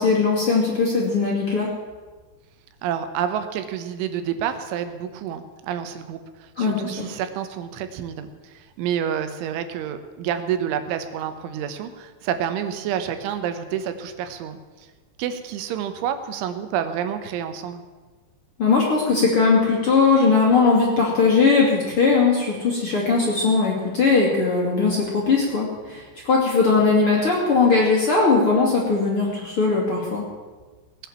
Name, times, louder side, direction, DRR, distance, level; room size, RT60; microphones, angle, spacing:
voice 1, 0.0-1.7 6.6-7.1 18.6-30.2, left 4 dB, 40° left, -3 dB, 2.3 m, -19 dB
voice 2, 2.8-14.9 15.2-17.8, right 9 dB, 85° right, 9 dB, 3.4 m, -29 dB
19.0 x 9.4 x 7.3 m, 1.3 s
omnidirectional pair, 5.5 m